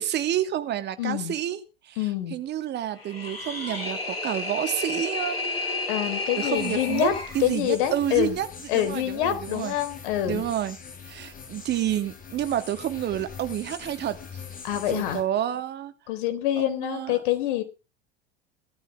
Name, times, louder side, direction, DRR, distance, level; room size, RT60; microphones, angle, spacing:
voice 1, 0.0-1.6 1.9-2.0 2.3-5.8 6.4-7.1 7.3-9.7 10.2-10.8 11.1-14.2 14.8-15.9 16.6-17.2, right 11 dB, 35° right, 10 dB, 2.6 m, -29 dB
voice 2, 1.0-1.4 2.0-2.4 5.9-7.1 7.4-8.4 8.7-10.4 14.6-15.2 16.1-17.6, left 12 dB, 55° left, 11 dB, 4.1 m, -26 dB
sound 1, 2.9-7.4, left 3 dB, 80° left, 6.5 m, -31 dB
sound 2, 6.5-15.2, left 6 dB, 30° left, 6.7 m, -42 dB
19.0 x 13.5 x 3.5 m, 0.31 s
figure-of-eight pair, 75°, 30 cm